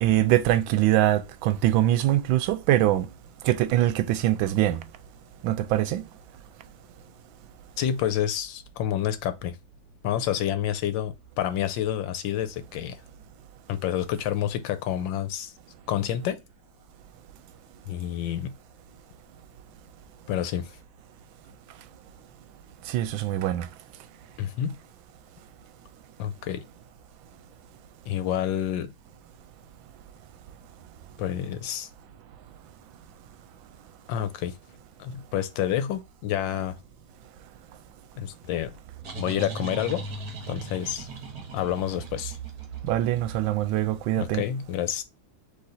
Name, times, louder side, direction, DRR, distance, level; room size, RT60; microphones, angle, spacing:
voice 1, 0.0-3.1 3.4-4.8 5.4-6.0 22.9-23.7 42.9-44.4, right 13 dB, 85° right, 1.3 m, -23 dB
voice 2, 7.8-9.6 10.0-13.0 13.7-15.5 15.9-16.4 17.9-18.5 20.3-20.7 24.4-24.8 26.2-26.6 28.1-28.9 31.2-31.9 34.1-34.5 35.0-36.8 38.2-38.7 39.1-40.0 40.5-41.1 41.5-42.4 44.2-45.0, left 10 dB, 80° left, 1.3 m, -28 dB
sound 1, 38.5-44.1, right 4 dB, 55° right, 1.4 m, -38 dB
3.9 x 3.1 x 4.0 m
omnidirectional pair, 2.1 m